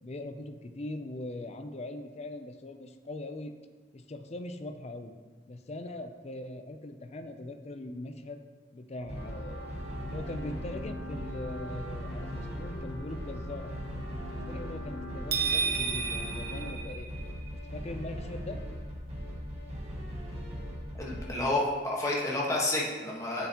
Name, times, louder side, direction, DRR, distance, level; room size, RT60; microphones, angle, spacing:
voice 1, 0.0-3.5 3.9-5.1 5.5-8.4 8.7-9.7 10.1-13.7 14.5-17.1 17.7-18.6, left 2 dB, 40° left, 7 dB, 0.5 m, -41 dB
sound 1, 9.0-21.3, equal, 35° right, 1.5 m, -39 dB
sound 2, 9.2-16.7, equal, 75° left, 1.0 m, -44 dB
sound 3, 15.3-17.5, right 6 dB, 60° right, 1.0 m, -31 dB
voice 2, 21.0-23.5, left 2 dB, 20° left, -4 dB, 1.4 m, -30 dB
8.1 x 6.8 x 3.0 m, 1.4 s
head